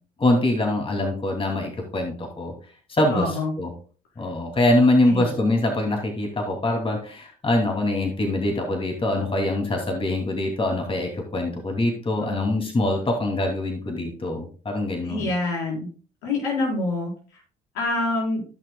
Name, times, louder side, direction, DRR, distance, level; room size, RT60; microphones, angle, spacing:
voice 1, 0.2-2.5 2.9-3.7 4.2-15.3, left 1 dB, 30° left, 2 dB, 2.7 m, -24 dB
voice 2, 3.1-3.5 5.0-5.3 12.2-12.3 15.0-15.9 16.2-17.1 17.7-18.4, left 2 dB, 80° left, -3 dB, 4.4 m, -26 dB
15.0 x 6.0 x 2.3 m, 0.39 s
hypercardioid pair, 60°, 19 cm